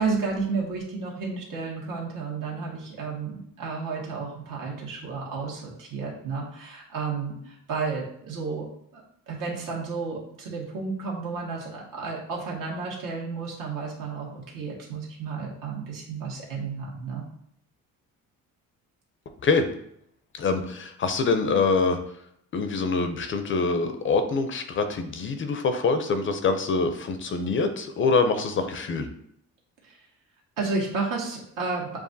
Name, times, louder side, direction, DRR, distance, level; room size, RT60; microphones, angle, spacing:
voice 1, 0.0-8.7 8.9-17.2 29.8-30.0 30.6-32.0, right 4 dB, 70° right, -3 dB, 1.6 m, -32 dB
voice 2, 20.3-22.0 22.5-29.1, left 4 dB, 35° left, 8 dB, 0.4 m, -25 dB
7.2 x 2.4 x 2.6 m, 0.71 s
cardioid pair, 125°, 33 cm